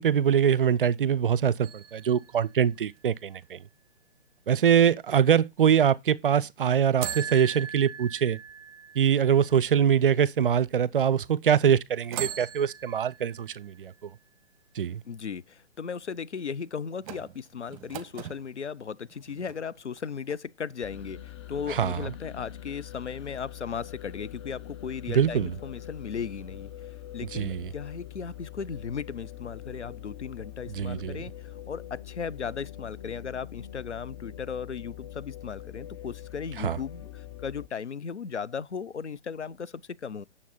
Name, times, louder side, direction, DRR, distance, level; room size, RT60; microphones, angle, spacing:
voice 1, 0.0-3.6 4.5-8.4 9.0-14.1 14.8-15.0 21.7-22.0 25.1-25.5 27.3-27.7 30.7-31.2 36.6-36.8, right 8 dB, 50° right, 0.6 m, -23 dB
sound 1, 1.6-3.5 7.0-10.1 10.7-10.8 12.0-13.8 17.0-18.4 19.1-20.0 20.3-20.4, right 9 dB, 30° right, 1.0 m, -40 dB
voice 2, 15.0-26.7 27.1-40.2, left 6 dB, 75° left, 0.7 m, -36 dB
sound 2, 20.8-37.7, left 12 dB, 25° left, 0.6 m, -43 dB
9.4 x 7.3 x 4.1 m
figure-of-eight pair, 125°, 35 cm